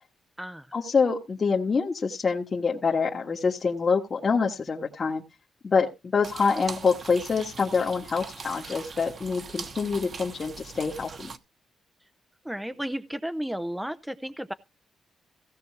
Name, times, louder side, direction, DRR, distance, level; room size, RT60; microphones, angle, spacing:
voice 1, 0.7-5.2 5.6-11.3, left 5 dB, 35° left, 1.5 m, -26 dB
sound 1, 6.2-11.4, right 5 dB, 45° right, 1.2 m, -41 dB
voice 2, 12.4-14.5, equal, 5° right, 0.6 m, -33 dB
16.5 x 6.1 x 4.7 m
cardioid pair, 125°, 0 cm